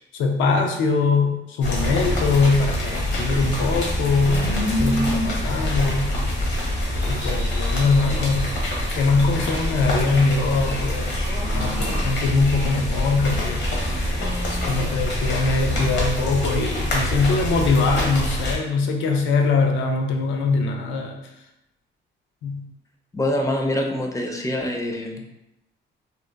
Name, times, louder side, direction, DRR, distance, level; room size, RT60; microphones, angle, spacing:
voice 1, 0.0-6.2 7.1-8.5 8.9-11.2 11.5-14.0 14.5-21.2 22.4-22.6, left 3 dB, 80° left, 3 dB, 0.4 m, -22 dB
sound 1, 1.6-18.6, left 1 dB, 65° left, 0.8 m, -25 dB
sound 2, 11.2-12.2 14.2-15.1 16.6-17.3, equal, 80° right, 0.6 m, -36 dB
voice 2, 23.1-25.2, left 1 dB, 15° left, 1 dB, 0.4 m, -25 dB
2.8 x 2.1 x 2.2 m, 0.89 s
cardioid pair, 90°, 20 cm